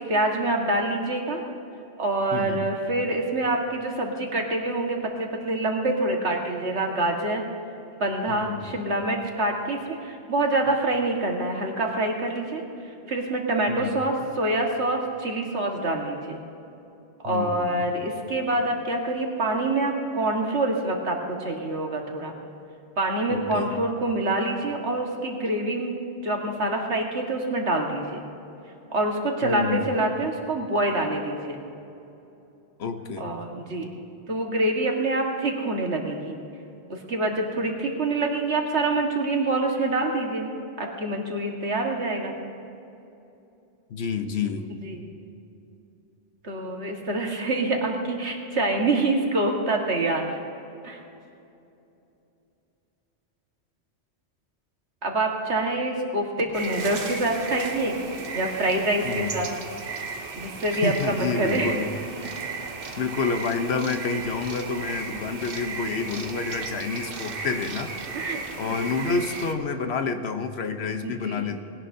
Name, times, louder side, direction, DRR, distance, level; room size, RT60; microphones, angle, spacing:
voice 1, 0.0-1.4 2.0-7.5 8.0-12.6 13.1-16.4 17.2-22.3 23.0-26.0 26.2-28.2 28.9-31.6 33.2-33.9 34.3-36.4 36.9-40.5 40.8-42.4 44.7-45.0 46.4-50.4 50.8-51.0 55.0-58.0 58.3-59.5 60.4-61.7 62.2-62.4 65.1-65.2 67.4-67.5 68.1-68.6 71.0-71.5, right 2 dB, 75° right, 1 dB, 1.9 m, -26 dB
voice 2, 2.3-2.6 8.3-8.6 13.7-14.0 17.2-17.9 23.3-23.7 29.4-30.0 32.8-33.3 43.9-44.7 59.0-59.3 60.8-61.9 63.0-67.9 68.6-71.6, left 5 dB, 70° left, 7 dB, 1.2 m, -29 dB
sound 1, 56.5-69.5, right 4 dB, 55° right, 1.1 m, -35 dB
20.0 x 17.5 x 2.7 m, 2.8 s
omnidirectional pair, 1.1 m